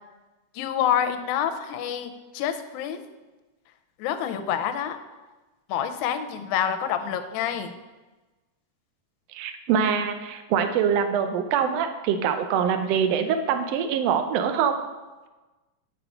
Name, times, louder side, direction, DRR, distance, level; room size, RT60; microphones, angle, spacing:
voice 1, 0.6-3.0 4.0-5.0 5.7-7.7, left 9 dB, 80° left, 7 dB, 2.0 m, -27 dB
voice 2, 9.3-14.8, right 7 dB, 75° right, 8 dB, 1.5 m, -24 dB
9.2 x 4.2 x 5.6 m, 1.2 s
omnidirectional pair, 3.5 m